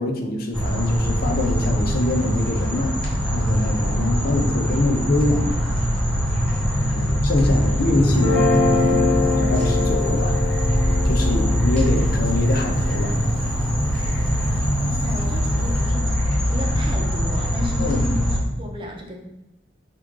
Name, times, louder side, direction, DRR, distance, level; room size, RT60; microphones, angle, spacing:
voice 1, 0.0-5.5 6.9-10.4 11.0-13.1 17.8-18.0, left 2 dB, 55° left, 3 dB, 0.6 m, -25 dB
sound 1, 0.5-18.4, equal, 5° left, 1.4 m, -22 dB
voice 2, 7.5-8.2 14.8-16.1 16.5-19.2, left 1 dB, 30° right, 0 dB, 0.8 m, -34 dB
Guitar, 8.1-14.4, left 3 dB, 85° left, 1.6 m, -24 dB
4.8 x 3.0 x 3.6 m, 0.91 s
head